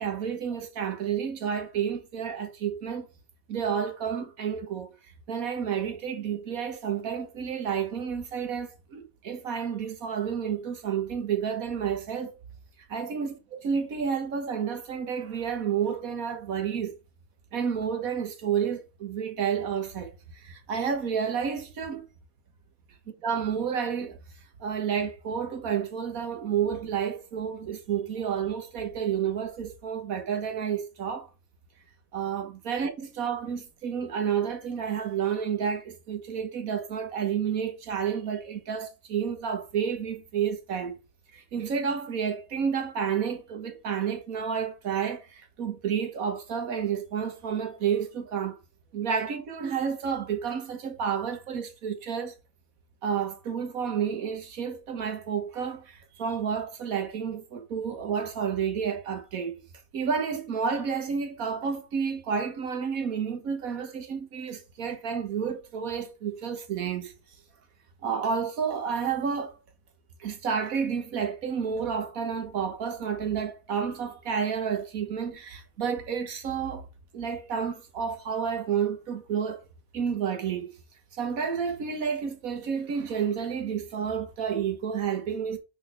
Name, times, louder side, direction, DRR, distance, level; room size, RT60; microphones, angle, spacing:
voice 1, 0.0-3.1 3.5-4.9 5.3-12.3 12.9-16.9 17.5-22.0 23.2-24.2 24.6-31.3 32.1-41.0 41.3-48.6 48.9-52.3 53.0-59.5 59.9-67.1 68.0-69.6 70.2-76.9 77.1-79.6 79.9-80.7 81.1-85.6, right 7 dB, 90° right, 1.7 m, -30 dB
6.3 x 4.3 x 4.3 m
omnidirectional pair, 1.4 m